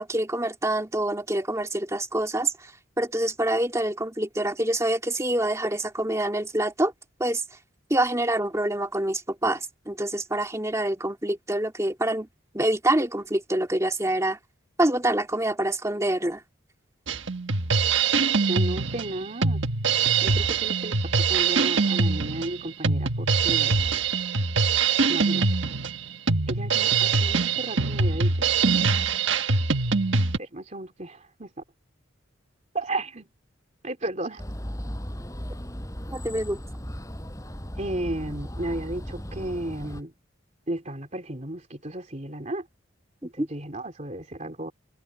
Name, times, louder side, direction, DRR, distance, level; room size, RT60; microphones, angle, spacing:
voice 1, 0.0-2.7 3.0-6.9 7.2-7.4 7.9-12.3 12.5-14.4 14.8-16.4 36.1-36.6 43.2-43.5, right 1 dB, 15° right, 2.5 m, -26 dB
Drum kit, 17.1-30.4, right 4 dB, 70° right, 1.4 m, -23 dB
voice 2, 18.5-19.6 20.2-21.0 21.3-23.7 25.1-25.5 26.5-28.5 30.4-31.5 32.7-33.3 33.8-34.4 37.8-40.1 40.7-42.7 43.2-44.7, right 1 dB, 35° right, 3.2 m, -33 dB
sound 1, 34.4-40.0, equal, 15° left, 5.9 m, -36 dB
head